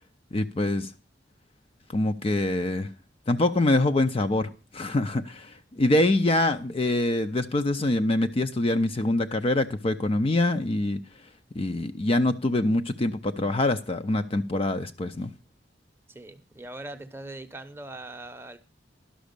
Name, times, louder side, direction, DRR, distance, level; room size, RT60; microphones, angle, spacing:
voice 1, 0.3-0.9 1.9-2.9 3.3-11.0 11.5-15.3, left 2 dB, 30° left, 0.5 m, -25 dB
voice 2, 16.1-18.6, right 2 dB, 15° right, 0.8 m, -41 dB
11.5 x 6.2 x 6.6 m
head